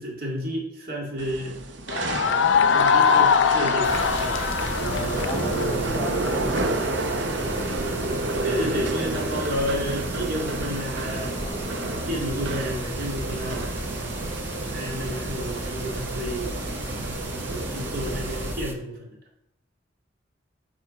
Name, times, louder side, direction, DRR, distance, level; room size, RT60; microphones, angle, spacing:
voice 1, 0.0-1.5 2.7-4.3 8.4-11.3 11.8-16.6 17.3-19.1, equal, 55° right, -1 dB, 2.1 m, -31 dB
sound 1, 1.2-18.5, right 2 dB, 70° right, 0.8 m, -30 dB
sound 2, 1.9-6.6, left 6 dB, 85° left, 0.5 m, -21 dB
sound 3, 3.8-18.7, equal, 10° right, 0.7 m, -35 dB
voice 2, 4.8-8.4 11.4-11.7, left 1 dB, 25° left, 1 dB, 0.7 m, -36 dB
7.7 x 4.5 x 5.0 m, 0.83 s
head